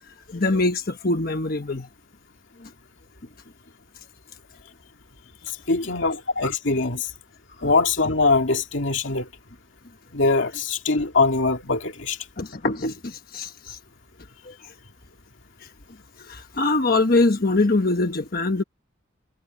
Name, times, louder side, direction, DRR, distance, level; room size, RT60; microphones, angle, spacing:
voice 1, 0.3-1.9 2.6-2.7 6.1-6.2 7.6-7.7 12.4-13.8 14.4-14.7 15.6-15.7 16.2-18.6, left 2 dB, 50° left, 1.2 m, -23 dB
voice 2, 5.7-7.1 7.6-9.3 10.1-12.2, left 3 dB, 65° left, 2.5 m, -22 dB
head